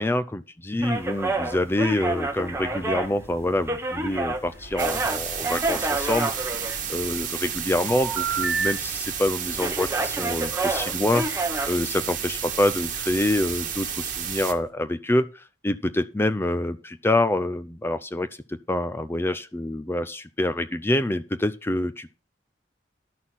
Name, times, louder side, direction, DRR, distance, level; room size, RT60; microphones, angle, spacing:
voice 1, 0.0-6.6 6.9-22.2, left 1 dB, 15° left, 0.4 m, -26 dB
sound 1, 0.8-14.7, equal, 80° left, 3.5 m, -48 dB
sound 2, 0.8-4.4 4.7-7.2 7.9-8.7 9.0-9.2 9.5-11.8, right 3 dB, 15° right, 1.3 m, -28 dB
sound 3, 4.8-14.5, right 8 dB, 45° right, 1.7 m, -31 dB
11.5 x 6.3 x 5.7 m
head